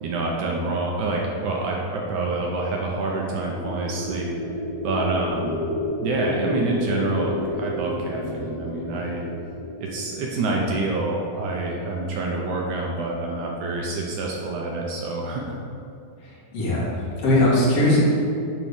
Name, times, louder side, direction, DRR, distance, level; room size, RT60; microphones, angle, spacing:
voice 1, 0.0-4.3 4.8-5.5 6.0-9.2 9.8-15.4, right 2 dB, 70° right, -2 dB, 1.9 m, -27 dB
sound 1, 3.2-11.3, left 1 dB, 75° left, 2.4 m, -31 dB
voice 2, 16.2-18.0, left 1 dB, 45° left, -6 dB, 2.6 m, -20 dB
9.2 x 4.1 x 6.5 m, 2.4 s
omnidirectional pair, 4.3 m